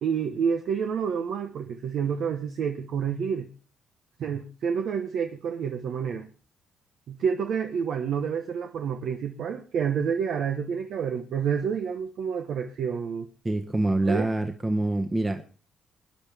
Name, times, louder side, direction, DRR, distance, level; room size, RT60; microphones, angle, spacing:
voice 1, 0.0-3.5 4.2-6.3 7.1-13.3 14.0-14.3, right 7 dB, 70° right, 1.0 m, -29 dB
voice 2, 13.4-15.4, right 2 dB, 20° right, 1.1 m, -25 dB
23.0 x 10.0 x 3.5 m
cardioid pair, 90°, 0 cm